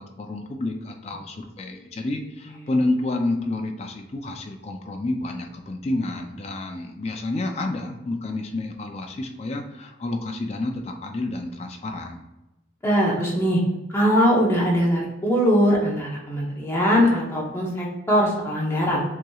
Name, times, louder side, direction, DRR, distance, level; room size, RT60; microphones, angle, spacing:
voice 1, 0.0-12.2, left 2 dB, 30° left, 3 dB, 0.4 m, -29 dB
voice 2, 12.8-13.6 13.9-19.0, equal, 10° left, -4 dB, 0.9 m, -21 dB
7.6 x 2.9 x 2.3 m, 0.98 s
head